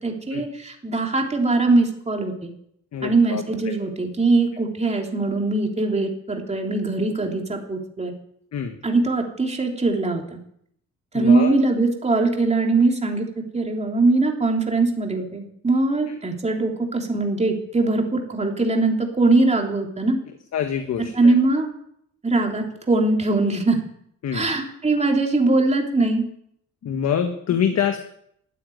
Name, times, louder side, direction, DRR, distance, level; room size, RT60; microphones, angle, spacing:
voice 1, 0.0-2.5 3.0-8.1 8.8-10.2 11.1-13.2 13.5-20.2 21.1-21.7 22.2-23.8 24.3-26.2, right 3 dB, 20° right, 1 dB, 3.3 m, -21 dB
voice 2, 2.9-3.4 8.5-8.8 11.1-11.6 20.5-21.3 24.2-24.5 26.8-28.0, left 8 dB, 60° left, 6 dB, 1.5 m, -25 dB
13.5 x 9.1 x 9.4 m, 0.70 s
cardioid pair, 90°, 30 cm